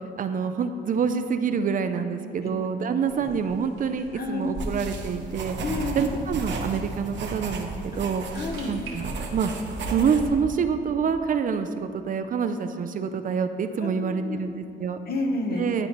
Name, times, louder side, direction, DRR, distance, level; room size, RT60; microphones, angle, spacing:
voice 1, 0.2-5.6 6.0-8.2 8.7-9.5 9.9-15.0 15.6-15.9, right 6 dB, 45° right, 8 dB, 0.4 m, -26 dB
sound 1, 3.0-5.2 7.9-8.9, right 3 dB, 85° right, 1.5 m, -46 dB
voice 2, 4.1-4.5 5.6-6.1 8.3-8.8 13.8-14.4 15.1-15.7, left 2 dB, 50° left, 3 dB, 0.9 m, -30 dB
sound 2, 4.6-10.3, right 3 dB, 65° right, 0.8 m, -34 dB
11.5 x 4.3 x 3.0 m, 2.4 s
cardioid pair, 90°, 20 cm